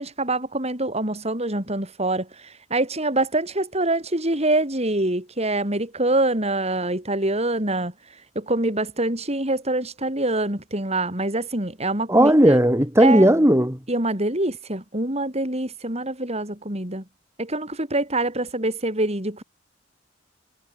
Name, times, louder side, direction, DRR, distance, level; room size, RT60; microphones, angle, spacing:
voice 1, 0.0-7.9 8.3-12.5 13.0-13.3 13.9-17.0 17.4-19.4, right 2 dB, 35° right, 7.6 m, -25 dB
voice 2, 12.1-13.8, right 1 dB, 15° right, 4.2 m, -16 dB
head